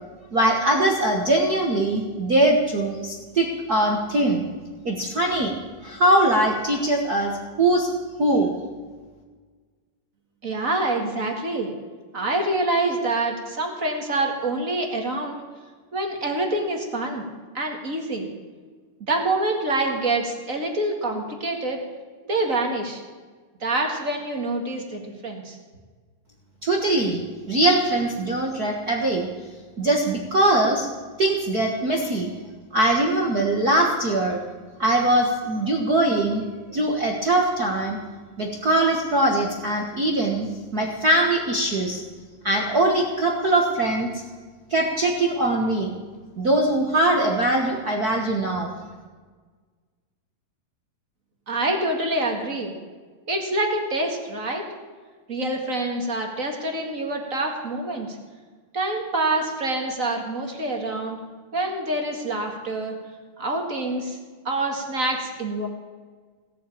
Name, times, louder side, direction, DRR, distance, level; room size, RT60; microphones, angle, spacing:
voice 1, 0.3-4.4 4.8-5.5 5.8-7.3 7.6-7.9 8.2-8.5 26.6-27.2 27.5-29.3 29.8-30.9 31.2-32.3 32.7-34.4 34.8-36.4 36.7-38.0 38.4-42.0 42.4-44.2 44.7-45.9 46.4-48.7, right 1 dB, 55° right, 0 dB, 1.0 m, -21 dB
voice 2, 10.4-11.7 12.1-15.4 15.9-17.2 17.5-18.3 19.1-21.8 22.3-23.0 23.6-25.6 51.5-52.7 53.3-54.6 55.3-58.2 58.7-61.2 61.5-62.9 63.4-64.2 64.4-65.7, right 2 dB, 30° right, 2 dB, 1.7 m, -26 dB
17.5 x 8.4 x 8.5 m, 1.5 s
omnidirectional pair, 3.9 m